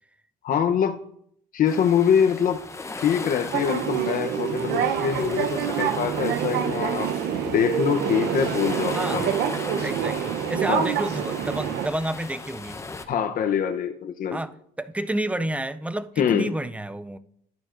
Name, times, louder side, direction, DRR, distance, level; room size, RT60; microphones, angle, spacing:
voice 1, 0.4-1.0 1.5-2.6 3.0-7.1 7.5-9.3 10.7-10.9 13.1-14.4 16.2-16.5, left 8 dB, 55° left, 0.8 m, -24 dB
sound 1, 1.7-13.1, left 3 dB, 15° left, 0.8 m, -38 dB
sound 2, 3.5-11.9, right 9 dB, 75° right, 0.8 m, -26 dB
voice 2, 8.9-9.3 9.8-12.8 14.3-17.2, right 1 dB, 10° right, 0.4 m, -30 dB
12.5 x 9.6 x 2.6 m
cardioid pair, 110°, 17 cm